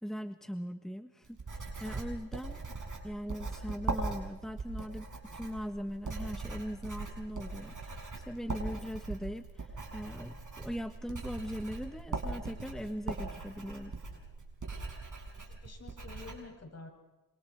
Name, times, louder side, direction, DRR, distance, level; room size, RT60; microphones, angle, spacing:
voice 1, 0.0-2.6 3.0-5.1 5.3-13.9, equal, ahead, 7 dB, 1.5 m, -40 dB
Writing, 1.2-16.3, right 3 dB, 50° right, 7.0 m, -40 dB
voice 2, 15.3-16.9, left 3 dB, 40° left, 3 dB, 7.3 m, -49 dB
27.5 x 27.0 x 4.7 m, 1.1 s
cardioid pair, 70°, 39 cm